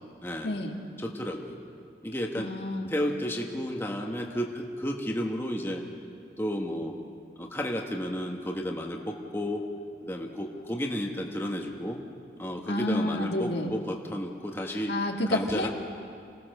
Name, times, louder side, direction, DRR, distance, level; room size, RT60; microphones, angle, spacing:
voice 1, 0.2-0.6 1.0-1.6 2.0-2.5 2.9-5.8 6.4-6.9 7.4-9.6 10.0-12.0 12.4-14.9 15.3-15.7, equal, 15° left, 1 dB, 1.3 m, -32 dB
voice 2, 2.4-2.9 12.7-13.7 14.7-15.7, left 1 dB, 70° left, 2 dB, 1.9 m, -30 dB
27.0 x 17.0 x 6.6 m, 2.3 s
head